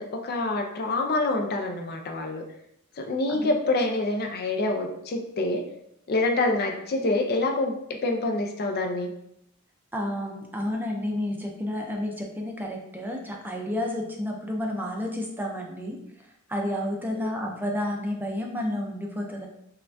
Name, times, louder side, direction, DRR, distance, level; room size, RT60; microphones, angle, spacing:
voice 1, 0.0-2.4 3.0-5.6 6.1-7.7 8.0-9.1 17.1-17.3, left 2 dB, 45° left, 3 dB, 0.5 m, -26 dB
voice 2, 9.9-16.0 16.5-19.5, left 1 dB, 10° right, 0 dB, 0.5 m, -30 dB
5.6 x 2.2 x 2.6 m, 0.76 s
head